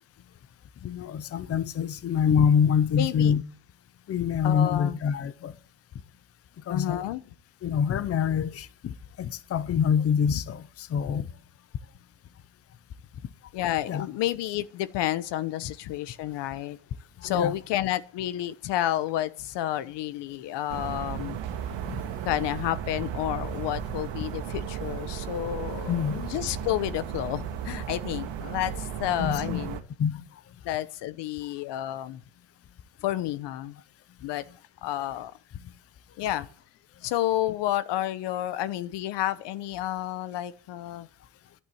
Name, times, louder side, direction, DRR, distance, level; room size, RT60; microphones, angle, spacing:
voice 1, 0.8-3.4 4.1-5.5 6.7-7.0 7.6-11.3 13.9-14.1 17.2-17.5 25.9-26.3 29.2-30.2, left 7 dB, 35° left, 0.8 m, -26 dB
voice 2, 3.0-3.3 4.4-5.0 6.7-7.2 13.5-16.8 17.2-21.4 22.2-29.8 30.6-32.2 33.0-33.8 34.2-34.4 34.8-35.3 36.2-36.5 37.0-41.1, left 13 dB, 70° left, 1.1 m, -30 dB
sound 1, 20.7-29.8, right 8 dB, 80° right, 1.8 m, -35 dB
12.0 x 8.8 x 7.8 m
cardioid pair, 160°, 43 cm